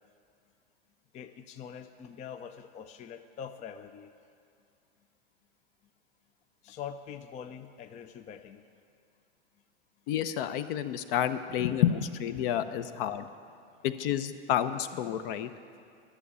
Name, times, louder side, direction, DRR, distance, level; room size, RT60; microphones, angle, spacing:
voice 1, 1.1-4.1 6.6-8.8 13.7-13.8, left 8 dB, 20° left, 8 dB, 0.4 m, -44 dB
voice 2, 10.1-13.3 13.8-15.5, left 10 dB, 55° left, 11 dB, 0.8 m, -29 dB
11.5 x 7.0 x 9.7 m, 2.4 s
hypercardioid pair, 105°, 33 cm